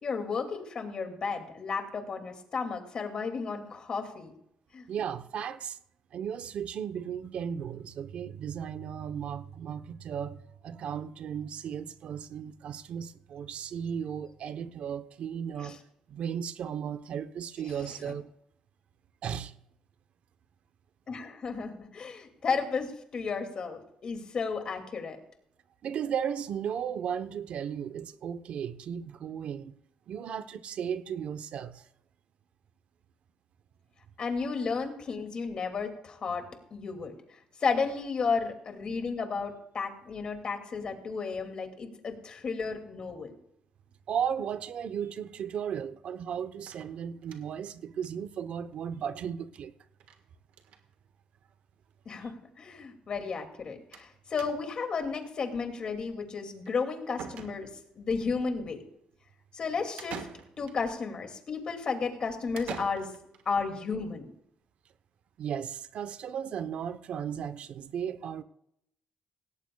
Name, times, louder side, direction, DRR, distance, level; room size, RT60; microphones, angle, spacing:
voice 1, 0.0-4.3 4.7-4.9 15.6-15.7 21.1-25.2 34.2-36.4 36.7-37.1 37.6-43.3 52.1-57.7 58.0-58.8 59.5-60.3 60.6-63.1 63.5-64.3, left 5 dB, 40° left, 2.3 m, -33 dB
voice 2, 4.9-5.8 6.1-15.8 16.1-18.3 19.2-19.5 25.8-29.7 30.1-31.8 44.1-49.7 52.2-52.3 65.4-68.4, right 8 dB, 60° right, 0.8 m, -35 dB
sound 1, 46.7-47.7 48.0-48.1 48.4-48.5 48.7-48.8 50.0-50.2 50.5-50.9 51.7-51.8 52.1-52.2 53.9-54.1 54.4-54.9 56.7-56.8 57.2-58.0 60.0-60.9 62.6-63.4, right 7 dB, 80° right, 1.4 m, -44 dB
18.0 x 17.0 x 2.3 m
cardioid pair, 130°, 2 cm